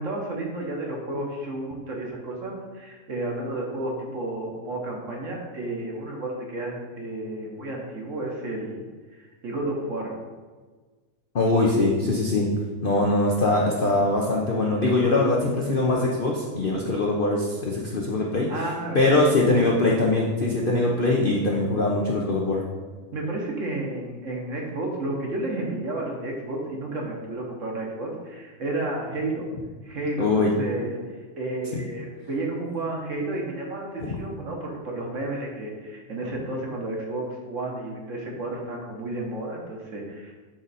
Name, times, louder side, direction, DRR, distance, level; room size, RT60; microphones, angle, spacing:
voice 1, 0.0-8.8 9.1-10.1 16.9-17.0 18.5-19.4 23.1-29.5 29.8-31.0 31.4-40.3, right 2 dB, 50° right, -1 dB, 1.3 m, -32 dB
voice 2, 11.3-12.5 12.8-18.5 18.9-22.6 30.2-30.5 31.7-31.8 34.0-34.2, left 2 dB, 55° left, -2 dB, 0.6 m, -22 dB
7.6 x 3.8 x 4.1 m, 1.4 s
omnidirectional pair, 1.8 m